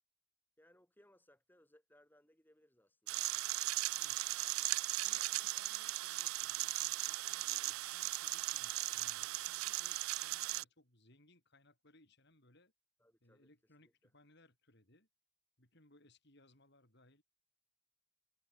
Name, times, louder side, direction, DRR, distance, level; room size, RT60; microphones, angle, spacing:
voice 1, 0.6-3.3 3.9-4.4 5.0-5.2 13.0-13.5 13.8-14.1, left 1 dB, 10° left, 7.4 m, -69 dB
sound 1, 3.1-10.6, right 17 dB, 85° right, 0.4 m, -37 dB
voice 2, 4.0-4.3 5.0-12.7 13.2-15.1 15.6-17.2, left 2 dB, 55° left, 6.8 m, -67 dB
head